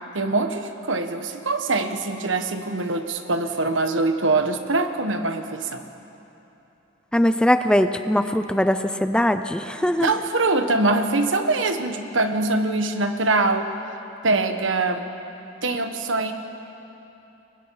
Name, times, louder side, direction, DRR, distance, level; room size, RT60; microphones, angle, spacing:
voice 1, 0.1-5.8 10.0-13.7 14.2-15.0 15.6-16.3, right 3 dB, 70° right, 7 dB, 1.4 m, -23 dB
voice 2, 7.1-10.1, left 1 dB, 5° left, 9 dB, 0.5 m, -21 dB
29.5 x 23.0 x 4.8 m, 3.0 s
head